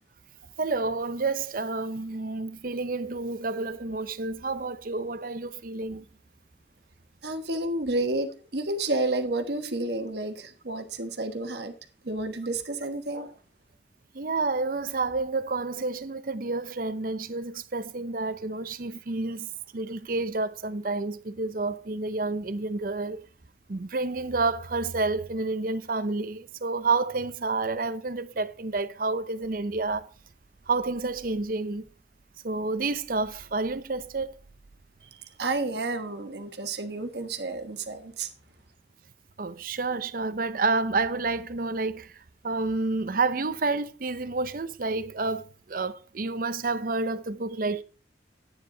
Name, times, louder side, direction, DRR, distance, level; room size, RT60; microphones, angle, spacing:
voice 1, 0.6-6.0 14.1-19.5 19.7-23.2 23.7-30.1 30.7-31.9 32.4-34.4 39.4-47.8, right 3 dB, 50° right, 0.7 m, -29 dB
voice 2, 7.2-11.7 12.0-13.3 35.4-38.3, right 2 dB, 65° right, 1.3 m, -30 dB
10.5 x 9.1 x 3.8 m
head